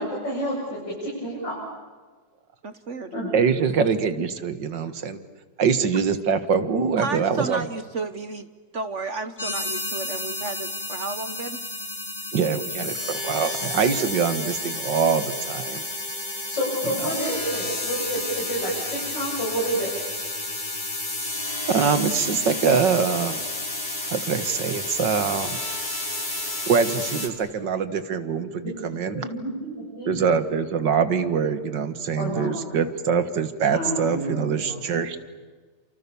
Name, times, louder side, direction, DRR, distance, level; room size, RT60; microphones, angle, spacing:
voice 1, 0.0-1.6 3.1-3.3 16.5-19.9 29.1-30.2 32.2-32.8 33.7-35.0, equal, 85° left, -5 dB, 8.4 m, -29 dB
voice 2, 2.6-3.1 7.0-8.5 8.7-11.6, right 4 dB, 45° right, 11 dB, 1.2 m, -32 dB
voice 3, 3.3-5.2 5.6-7.7 12.3-15.9 16.9-17.2 21.5-23.5 24.0-25.7 26.7-29.3 30.1-35.2, right 6 dB, 75° right, 11 dB, 2.2 m, -24 dB
sound 1, 9.4-27.3, left 2 dB, 25° left, 3.2 m, -31 dB
29.5 x 27.5 x 7.1 m, 1.4 s
omnidirectional pair, 1.9 m